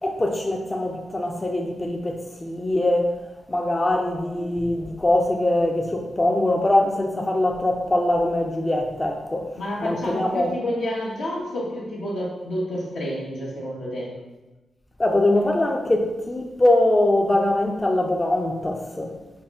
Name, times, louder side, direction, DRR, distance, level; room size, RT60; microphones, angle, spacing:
voice 1, 0.0-3.2 3.5-10.5 15.0-19.1, left 1 dB, 30° left, 0.4 m, -22 dB
voice 2, 9.6-14.1, equal, 85° left, 0.9 m, -29 dB
3.8 x 2.0 x 3.4 m
supercardioid pair, 45°, 0 cm